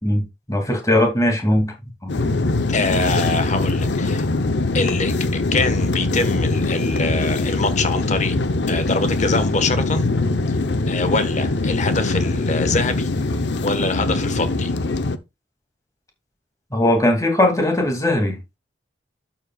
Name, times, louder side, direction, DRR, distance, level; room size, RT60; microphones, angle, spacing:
voice 1, 0.5-1.7 2.0-2.1 16.7-18.4, left 1 dB, 20° left, 2.5 m, -19 dB
sound 1, 2.1-15.2, left 2 dB, 70° left, 0.8 m, -22 dB
voice 2, 2.7-4.3 4.7-8.3 8.7-10.1 10.5-10.6 10.9-13.1 13.6-14.7, left 3 dB, 40° left, 1.3 m, -24 dB
12.0 x 7.4 x 2.4 m
head